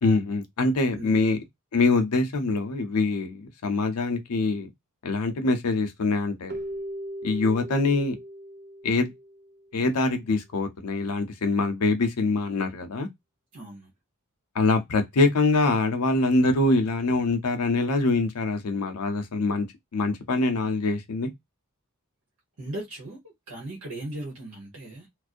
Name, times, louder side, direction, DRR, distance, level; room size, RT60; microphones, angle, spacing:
voice 1, 0.0-1.4 1.7-4.7 5.0-6.6 7.2-8.2 8.8-9.1 9.7-13.1 14.5-19.7 19.9-21.3, left 3 dB, 90° left, 0.7 m, -24 dB
Keyboard (musical), 6.5-9.7, right 1 dB, 45° right, 0.5 m, -38 dB
voice 2, 13.5-13.9 22.6-23.2 23.5-25.1, right 1 dB, 65° right, 1.0 m, -37 dB
2.6 x 2.0 x 2.4 m
head